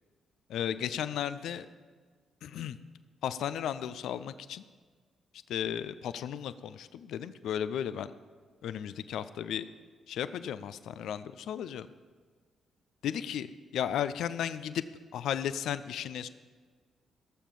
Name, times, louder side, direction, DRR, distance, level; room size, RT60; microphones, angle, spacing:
voice 1, 0.5-1.7 2.4-2.8 3.2-4.6 5.5-8.1 8.6-9.7 10.1-11.9 13.0-14.8 15.1-16.3, left 9 dB, 70° left, 14 dB, 0.4 m, -34 dB
17.0 x 7.3 x 5.3 m, 1.5 s
hypercardioid pair, 40°, 0 cm